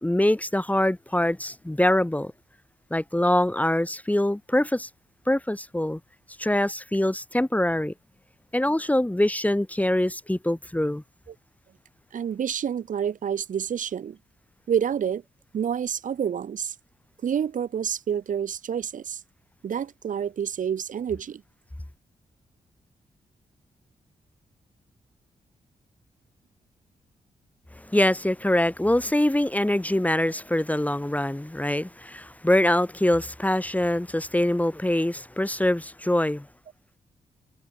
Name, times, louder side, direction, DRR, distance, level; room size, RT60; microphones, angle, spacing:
voice 1, 0.0-2.3 2.9-4.9 5.3-6.0 6.4-7.9 8.5-11.0 27.8-36.5, left 1 dB, 10° left, 2.0 m, -24 dB
voice 2, 12.1-14.2 14.7-15.2 15.5-16.7 17.2-19.2 19.6-21.4, right 8 dB, 70° right, 4.9 m, -28 dB
supercardioid pair, 45°, 14 cm